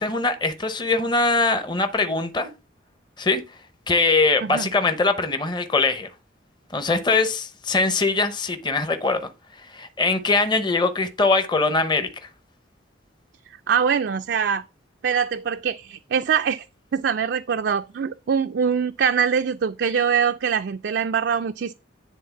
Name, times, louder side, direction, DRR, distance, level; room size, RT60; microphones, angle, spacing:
voice 1, 0.0-2.5 3.2-3.4 3.9-6.1 6.7-9.2 9.7-12.1, left 3 dB, 25° left, 0.8 m, -22 dB
voice 2, 13.7-14.6 15.0-16.7 16.9-21.7, right 7 dB, 60° right, 0.4 m, -23 dB
10.5 x 3.6 x 5.8 m
head